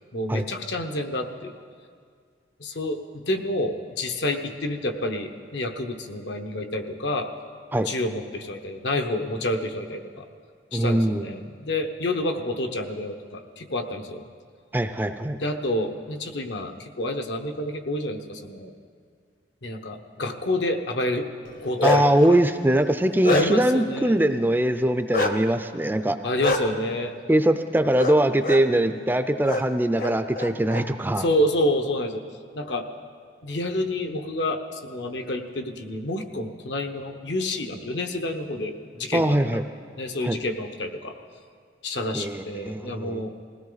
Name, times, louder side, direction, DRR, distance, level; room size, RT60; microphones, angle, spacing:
voice 1, 0.1-1.5 2.6-7.3 7.8-10.3 10.7-14.3 15.4-18.7 19.6-21.3 21.6-22.0 23.3-24.2 26.2-27.2 31.2-32.2 32.5-32.9 33.4-39.4 40.0-41.1 41.8-43.3, left 1 dB, 75° left, 5 dB, 1.1 m, -28 dB
voice 2, 10.7-11.2 14.7-15.4 21.8-26.2 27.3-31.3 39.1-39.6 40.2-40.4 42.1-43.2, right 1 dB, 10° right, 9 dB, 0.4 m, -22 dB
Bark, 21.5-22.2 22.7-23.8 25.1-25.3 26.4-26.6 28.0-28.2 28.4-28.6 29.4-29.6 30.0-30.8, left 2 dB, 50° left, 0.8 m, -25 dB
20.5 x 16.5 x 4.0 m, 2.1 s
head